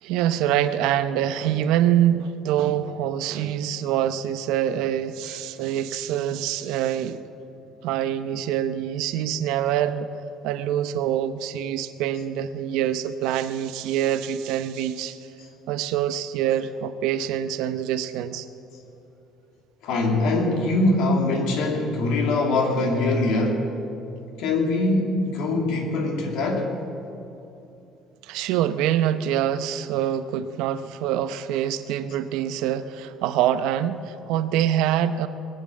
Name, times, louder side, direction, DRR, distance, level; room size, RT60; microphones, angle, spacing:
voice 1, 0.0-7.2 7.8-10.1 10.4-15.2 15.7-18.5 28.2-35.3, right 10 dB, 85° right, 12 dB, 0.7 m, -25 dB
voice 2, 19.8-23.7 24.4-26.7, left 2 dB, 70° left, 2 dB, 2.4 m, -23 dB
20.0 x 8.8 x 7.4 m, 2.9 s
cardioid pair, 150°, 0 cm